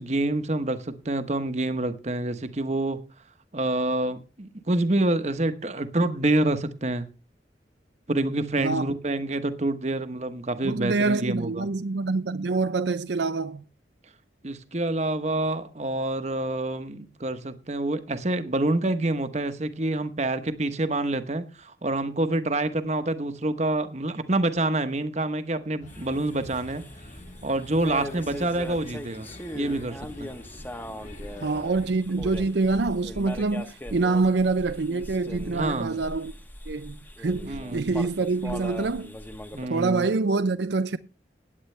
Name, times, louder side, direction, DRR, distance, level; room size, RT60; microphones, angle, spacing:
voice 1, 0.0-3.0 3.5-7.1 8.1-11.7 14.4-26.8 27.4-29.3 29.5-30.3 35.5-36.0 37.5-37.9 39.5-40.1, right 2 dB, 40° right, 1.0 m, -27 dB
voice 2, 8.6-8.9 10.6-13.6 31.4-36.3 36.7-39.2 39.7-41.0, right 3 dB, 75° right, 0.6 m, -26 dB
sound 1, 25.8-31.9, left 1 dB, 40° left, 1.8 m, -46 dB
sound 2, 25.9-39.7, left 1 dB, 10° left, 1.0 m, -40 dB
16.0 x 9.6 x 3.3 m
head